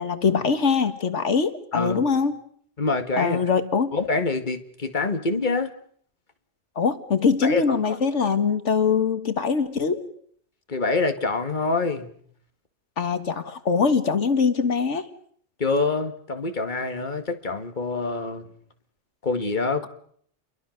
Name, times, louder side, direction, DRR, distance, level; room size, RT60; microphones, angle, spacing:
voice 1, 0.0-2.4 3.2-4.0 6.8-10.1 13.0-15.1, left 5 dB, 85° left, 9 dB, 1.9 m, -23 dB
voice 2, 1.7-2.1 2.8-3.4 3.9-5.7 7.4-8.0 10.7-12.1 15.6-18.5 19.2-19.9, left 3 dB, 40° left, 7 dB, 2.2 m, -26 dB
30.0 x 23.5 x 6.6 m, 0.62 s
omnidirectional pair, 1.2 m